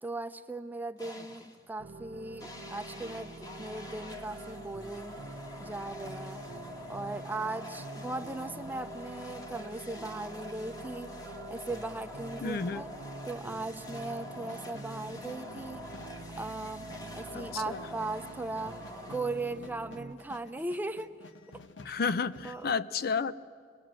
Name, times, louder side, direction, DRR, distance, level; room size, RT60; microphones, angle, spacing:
voice 1, 0.0-5.2 5.6-6.5 6.9-12.9 13.2-15.9 16.4-18.8 19.1-21.1 21.5-21.9 22.4-22.7, right 2 dB, 10° right, 9 dB, 0.7 m, -38 dB
sound 1, 1.0-1.7 2.4-19.7, left 1 dB, 20° left, 1.4 m, -46 dB
sound 2, 1.8-20.1, right 2 dB, 75° right, 0.7 m, -47 dB
voice 2, 12.4-12.8 17.3-17.8 21.8-23.3, left 5 dB, 55° left, 14 dB, 0.5 m, -31 dB
sound 3, 13.9-22.8, left 3 dB, 85° left, 1.0 m, -53 dB
28.0 x 20.0 x 7.6 m, 2.2 s
head